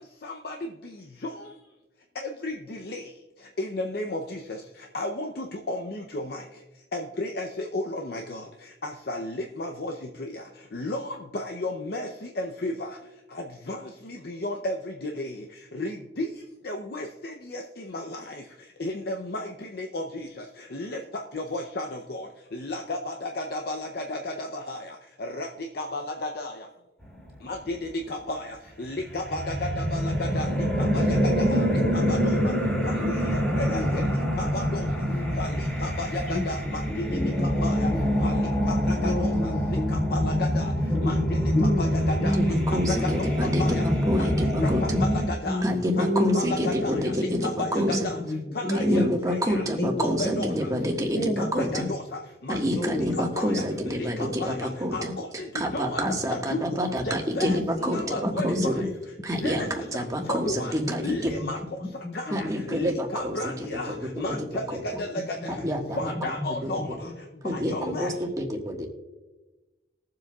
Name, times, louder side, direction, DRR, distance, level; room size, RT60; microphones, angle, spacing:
voice 1, 0.2-0.6 1.2-1.5 2.2-3.0 3.6-4.6 4.9-6.4 6.9-8.5 8.8-9.9 10.2-10.4 10.7-12.9 13.3-13.8 14.0-15.4 15.7-16.3 16.6-18.4 18.8-20.3 20.7-25.5 25.7-26.5 27.4-30.5 30.9-32.5 32.8-34.1 34.4-34.9 35.4-37.2 37.6-37.9 38.2-39.5 39.9-40.7 41.0-43.3 43.6-43.8 44.2-45.6 46.0-48.2 48.5-49.8 50.2-50.5 51.4-52.6 53.2-55.5 55.7-56.0 56.3-56.8 57.1-58.9 59.4-59.8 60.3-60.7 61.0-61.6 62.1-65.6 66.0-67.1 67.5-68.1, left 2 dB, 60° left, 3 dB, 0.7 m, -33 dB
sound 1, 29.0-45.3, equal, 10° left, 2.4 m, -25 dB
voice 2, 33.7-35.4 36.3-38.4 38.7-40.1 40.9-41.2 41.5-43.3 43.6-43.8 44.1-47.4 47.7-49.1 49.8-50.9 51.1-51.9 52.7-53.1 56.0-56.2 58.6-58.9 59.6-59.7 61.0-61.5 61.8-62.6 65.3-65.7 66.0-66.5 66.8-67.1 67.8-68.1, left 1 dB, 45° left, -3 dB, 1.9 m, -31 dB
voice 3, 42.4-45.0 45.6-48.0 48.7-51.9 52.5-55.1 55.5-58.8 59.2-61.3 62.3-64.0 64.2-64.4 64.7-64.8 65.6-66.3 66.6-66.7 67.4-68.9, equal, 20° right, 0 dB, 1.6 m, -28 dB
21.5 x 7.6 x 2.4 m, 1.1 s
head